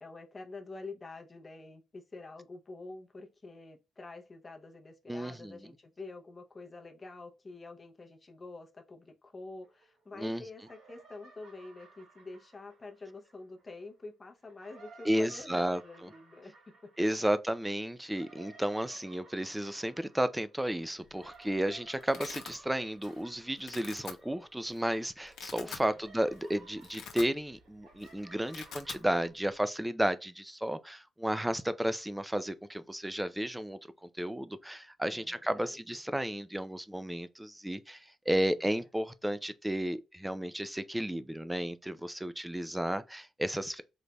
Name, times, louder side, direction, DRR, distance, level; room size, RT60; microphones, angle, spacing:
voice 1, 0.0-16.9 25.6-26.0 35.1-35.8, left 3 dB, 20° left, 0.7 m, -47 dB
voice 2, 5.1-5.6 10.1-10.4 15.0-15.8 17.0-43.8, right 1 dB, 5° right, 0.3 m, -33 dB
sound 1, 9.6-10.3 10.6-13.8 14.4-25.0 25.2-29.3, right 4 dB, 60° right, 2.1 m, -58 dB
Domestic sounds home sounds, 21.1-21.4 21.7-22.5 23.0-23.3 23.6-24.1 24.7-24.8 25.2-25.9 26.3-26.4 26.7-27.7 27.9-28.1 28.3-29.0, left 7 dB, 80° left, 0.7 m, -44 dB
3.9 x 3.2 x 2.2 m
cardioid pair, 150°, 0 cm